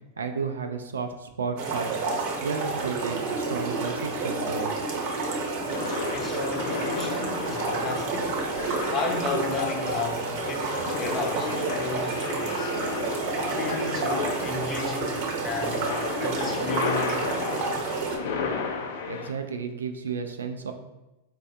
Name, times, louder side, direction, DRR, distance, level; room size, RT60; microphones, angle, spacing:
voice 1, 0.2-1.9 2.4-4.7 19.1-20.7, right 5 dB, 85° right, 0.3 m, -32 dB
sound 1, 1.6-18.2, right 4 dB, 55° right, 0.7 m, -30 dB
sound 2, 5.6-19.3, left 5 dB, 70° left, 0.4 m, -33 dB
voice 2, 5.6-8.4 8.9-12.7 13.3-15.9 16.2-17.5 17.7-18.0, left 4 dB, 30° left, 0.6 m, -34 dB
4.1 x 2.2 x 2.6 m
hypercardioid pair, 100°, 0 cm